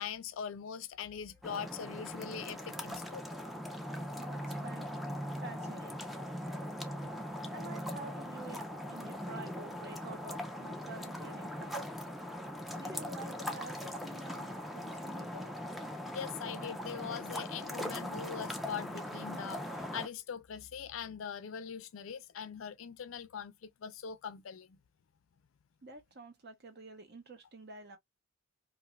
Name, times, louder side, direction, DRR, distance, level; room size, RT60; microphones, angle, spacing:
voice 1, 0.0-3.2 7.0-7.1 16.1-19.7 19.9-24.8, left 7 dB, 70° left, 0.4 m, -42 dB
sound 1, 1.4-20.1, equal, ahead, 0.3 m, -40 dB
voice 2, 3.9-6.0 7.5-11.8 12.8-15.5 25.8-28.0, right 2 dB, 50° right, 0.8 m, -49 dB
2.5 x 2.4 x 2.9 m
head